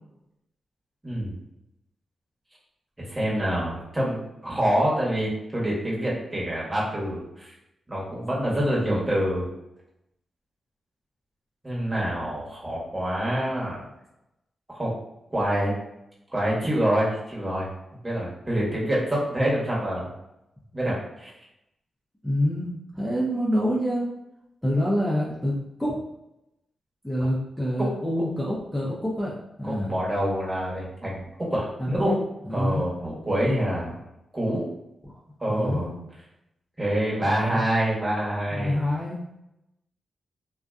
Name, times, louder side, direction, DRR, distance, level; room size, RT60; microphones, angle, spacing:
voice 1, 1.0-1.4 3.0-7.5 7.9-9.5 11.6-13.9 14.7-14.9 15.3-15.7 16.3-17.7 18.0-20.1 20.7-21.3 27.8-27.9 29.6-32.1 32.5-34.0 34.3-34.7 35.4-35.9 36.8-38.8, equal, 20° right, -5 dB, 1.1 m, -26 dB
voice 2, 22.2-24.1 24.6-26.0 27.0-29.3 29.6-29.9 31.8-32.2 32.4-32.9 35.0-35.1 35.5-35.9 37.2-37.6 38.5-39.2, equal, 10° left, -6 dB, 0.7 m, -26 dB
2.5 x 2.2 x 2.4 m, 0.86 s
cardioid pair, 50°, 0 cm